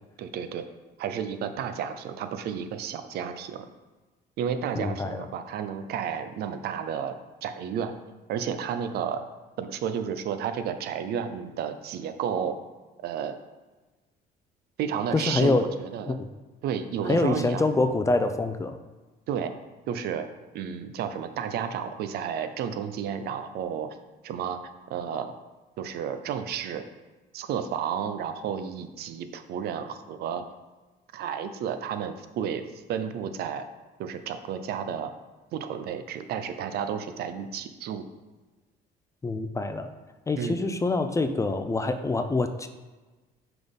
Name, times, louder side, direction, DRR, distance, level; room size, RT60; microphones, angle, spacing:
voice 1, 0.2-0.6 1.0-3.7 4.4-7.1 7.4-7.9 8.3-9.2 9.6-12.6 13.0-13.4 14.8-16.2 16.6-17.6 19.3-19.5 19.9-20.3 20.5-24.0 24.2-24.6 24.9-25.3 25.8-26.8 27.3-30.4 31.1-32.6 32.9-33.6 34.0-35.1 35.5-38.0 40.4-40.7, right 8 dB, 70° right, 9 dB, 0.6 m, -32 dB
voice 2, 4.7-5.3 15.1-15.7 16.1-16.3 17.1-18.8 39.2-39.9 40.3-42.7, left 3 dB, 20° left, 9 dB, 0.4 m, -25 dB
5.9 x 3.8 x 5.3 m, 1.2 s
cardioid pair, 110°, 17 cm